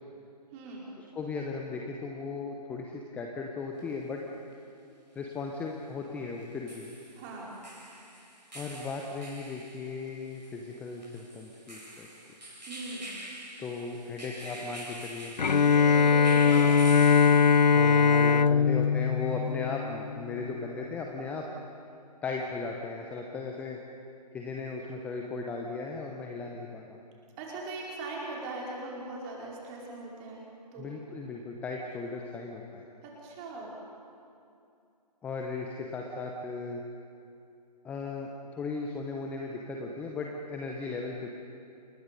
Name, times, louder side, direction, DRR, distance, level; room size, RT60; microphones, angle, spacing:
voice 1, 0.5-0.8 7.1-7.6 12.7-13.1 15.6-16.8 27.4-30.4 30.7-30.9 33.0-33.7, right 2 dB, 20° right, -3 dB, 4.8 m, -40 dB
voice 2, 1.1-4.2 5.1-6.9 8.5-12.1 13.6-15.3 17.7-21.5 22.2-23.8 24.3-27.0 30.8-32.9 35.2-36.8 37.8-41.3, left 4 dB, 5° left, 1 dB, 0.8 m, -37 dB
sound 1, 3.8-3.9 6.4-18.0, right 1 dB, 85° right, 5.2 m, -46 dB
Bowed string instrument, 15.4-20.3, left 6 dB, 85° left, 0.5 m, -21 dB
29.0 x 20.0 x 5.3 m, 2.6 s
figure-of-eight pair, 140°, 21 cm